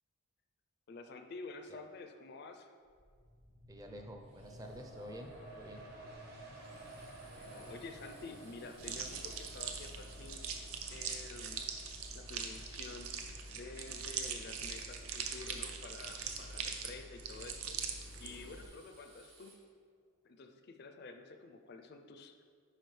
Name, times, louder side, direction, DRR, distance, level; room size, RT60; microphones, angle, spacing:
voice 1, 0.9-2.7 7.2-10.4 10.9-13.1 13.5-17.8 18.2-19.6 20.2-22.4, left 3 dB, 45° left, 7 dB, 0.4 m, -50 dB
sound 1, 2.9-16.2 16.6-16.7, right 1 dB, 40° right, 1.1 m, -54 dB
voice 2, 3.7-5.9, equal, 15° right, 4 dB, 0.5 m, -49 dB
Drill, 4.2-13.1 16.5-19.5, right 3 dB, 90° right, 1.6 m, -65 dB
sound 2, 8.8-18.7, right 5 dB, 70° right, 0.6 m, -42 dB
10.5 x 4.8 x 3.2 m, 2.1 s
head